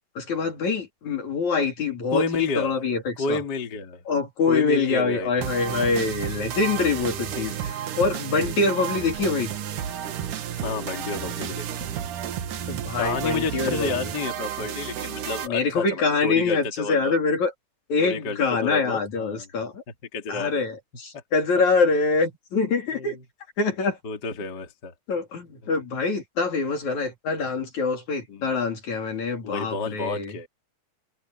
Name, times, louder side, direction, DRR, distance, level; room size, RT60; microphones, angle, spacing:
voice 1, 0.2-3.4 4.1-9.5 12.7-14.1 15.4-17.5 17.9-19.8 20.3-23.2 23.6-24.0 25.1-30.3, left 4 dB, 65° left, 4.6 m, -25 dB
voice 2, 2.1-2.7 3.2-4.0 4.4-5.3 10.6-11.9 13.0-17.2 18.0-19.5 20.1-20.6 21.1-21.2 22.9-23.2 24.0-24.9 28.3-28.5 29.4-30.5, left 4 dB, 35° left, 2.6 m, -30 dB
sound 1, 5.4-15.5, right 9 dB, 90° right, 3.1 m, -32 dB
omnidirectional pair, 3.5 m